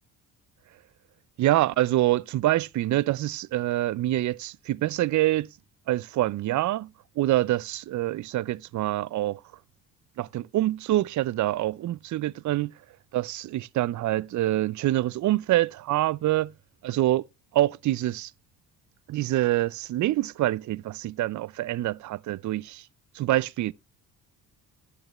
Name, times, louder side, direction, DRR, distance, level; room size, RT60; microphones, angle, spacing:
voice 1, 1.4-5.5 5.9-6.9 7.2-9.4 10.2-12.7 13.1-16.5 16.8-17.2 17.5-18.3 19.1-22.8 23.2-23.7, right 15 dB, 45° right, 0.4 m, -26 dB
11.0 x 8.2 x 3.0 m
supercardioid pair, 65°, 41 cm